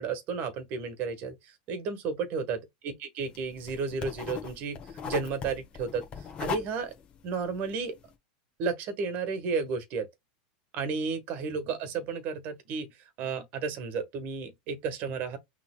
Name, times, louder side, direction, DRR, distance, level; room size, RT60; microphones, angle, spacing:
voice 1, 0.0-4.8 5.0-6.0 6.4-6.9 7.2-7.9 8.6-10.1 10.7-15.4, right 5 dB, 40° right, 1.4 m, -33 dB
sound 1, 3.2-8.1, left 7 dB, 25° left, 1.3 m, -39 dB
5.9 x 3.4 x 2.3 m
supercardioid pair, 155°, 5 cm